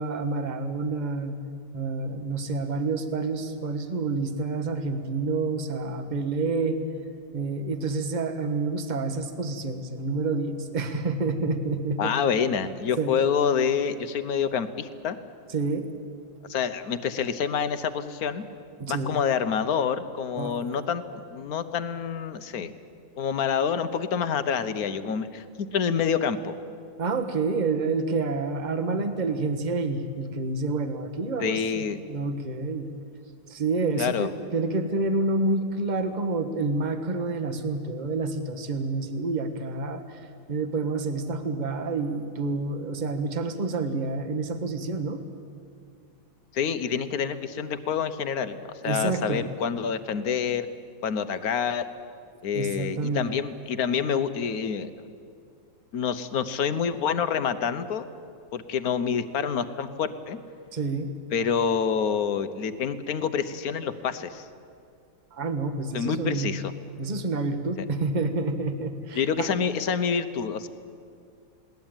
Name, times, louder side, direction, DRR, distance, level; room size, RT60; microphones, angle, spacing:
voice 1, 0.0-1.4 1.7-6.8 7.3-12.1 12.5-12.6 13.0-13.1 15.5-15.9 18.8-19.2 20.4-20.6 27.0-32.9 33.5-40.2 40.5-45.2 48.8-49.4 52.5-53.4 60.7-61.1 65.3-66.6 67.0-69.5, right 3 dB, 25° right, 7 dB, 1.3 m, -28 dB
voice 2, 12.0-15.2 16.5-18.4 18.9-21.0 21.3-22.7 23.2-26.6 31.4-32.0 34.0-34.3 46.5-48.6 48.8-50.7 51.0-51.8 52.4-54.9 55.9-58.0 58.5-60.4 61.3-64.5 65.9-66.7 69.1-70.7, left 7 dB, 55° left, 11 dB, 1.3 m, -27 dB
21.0 x 18.0 x 9.0 m, 2.3 s
omnidirectional pair, 2.0 m